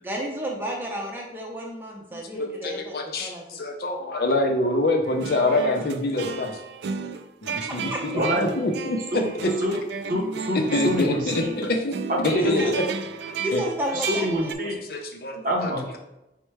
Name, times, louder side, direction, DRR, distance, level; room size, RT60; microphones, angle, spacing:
voice 1, 0.0-2.9 3.2-3.4 7.7-8.2 12.3-12.7 13.4-14.5, equal, 10° right, -1 dB, 0.7 m, -31 dB
voice 2, 2.1-6.5 7.4-9.5 10.7-11.9 12.2-12.8 13.5-13.6 14.9-16.0, left 2 dB, 55° left, 3 dB, 0.5 m, -26 dB
sound 1, 5.0-14.5, right 5 dB, 70° right, 0.3 m, -34 dB
voice 3, 10.1-11.5 12.1-12.6 13.9-14.8 15.4-16.0, equal, 50° right, 0 dB, 0.8 m, -26 dB
4.4 x 2.1 x 4.6 m, 0.92 s
head